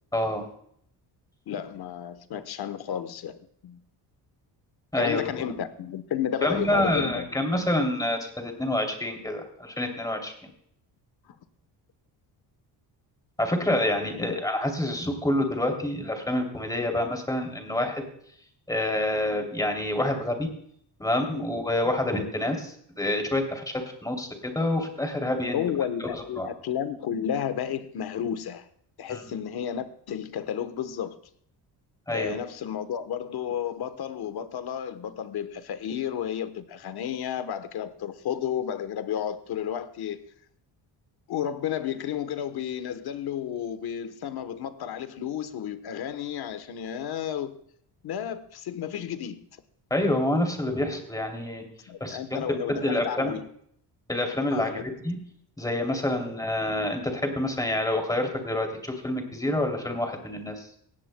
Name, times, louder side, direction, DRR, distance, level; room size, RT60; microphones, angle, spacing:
voice 1, 0.1-0.5 4.9-5.4 6.4-10.3 13.4-18.0 18.7-20.5 21.0-23.6 24.0-25.6 26.1-26.5 29.1-29.3 32.1-32.4 49.9-51.7 52.0-53.3 54.1-55.2 55.6-60.7, left 1 dB, 10° left, 2.9 m, -27 dB
voice 2, 1.5-3.4 3.6-3.8 5.0-7.3 14.1-14.4 25.5-28.7 29.0-31.2 32.1-40.2 41.3-47.6 48.0-49.4 51.9-53.4 54.5-54.8, left 9 dB, 65° left, 1.1 m, -32 dB
18.0 x 16.5 x 2.2 m
cardioid pair, 120°, 42 cm